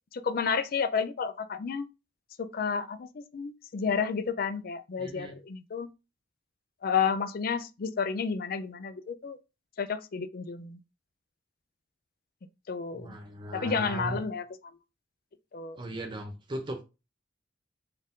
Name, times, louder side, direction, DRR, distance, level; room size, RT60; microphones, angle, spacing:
voice 1, 0.1-1.9 2.4-5.9 6.8-9.4 9.8-10.8 12.7-13.2 13.5-14.4 15.5-15.8, left 6 dB, 45° left, 0.4 m, -31 dB
voice 2, 5.0-5.4 13.0-14.2 15.8-16.8, right 1 dB, 25° right, 0.5 m, -37 dB
4.2 x 2.5 x 3.6 m
head